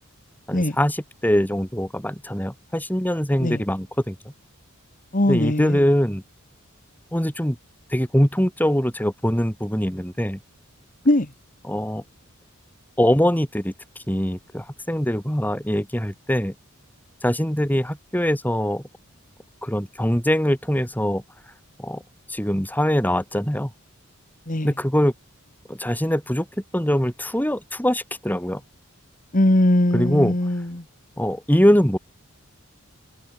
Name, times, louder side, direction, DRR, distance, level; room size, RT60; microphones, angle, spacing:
voice 1, 0.5-4.2 5.3-6.2 7.1-7.6 7.9-10.4 11.7-12.0 13.0-13.7 14.1-16.5 17.2-18.8 19.6-21.2 21.8-22.0 22.3-23.7 24.6-25.1 25.7-26.5 26.7-28.6 29.9-30.3 31.2-32.0, equal, 10° left, 6.1 m, -22 dB
voice 2, 5.1-5.9 11.1-11.3 24.5-24.7 29.3-30.8, left 1 dB, 40° left, 1.9 m, -20 dB
head